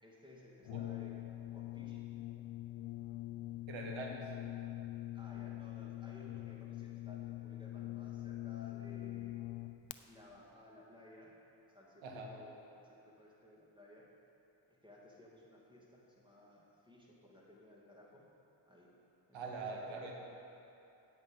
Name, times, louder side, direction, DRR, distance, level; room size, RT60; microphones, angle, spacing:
voice 1, 0.0-1.1 1.5-2.0 5.1-9.4 10.1-11.3 11.7-14.0 14.7-18.3 18.7-18.9 19.3-19.5 19.9-20.1, left 1 dB, 10° right, -5 dB, 2.3 m, -58 dB
Brass instrument, 0.6-10.0, left 15 dB, 65° left, 0.6 m, -44 dB
voice 2, 3.7-4.4 12.0-12.4 19.3-20.1, right 3 dB, 70° right, 0 dB, 1.6 m, -43 dB
9.5 x 8.0 x 5.3 m, 2.8 s
cardioid pair, 100°, 48 cm